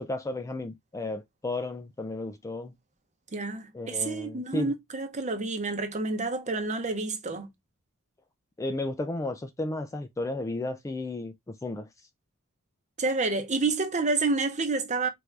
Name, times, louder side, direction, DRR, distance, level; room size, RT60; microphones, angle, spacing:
voice 1, 0.0-2.7 3.7-4.7 8.6-11.9, left 2 dB, 15° left, 0.3 m, -33 dB
voice 2, 3.3-7.5 13.0-15.1, right 3 dB, 35° right, 0.8 m, -29 dB
4.5 x 2.6 x 3.1 m
head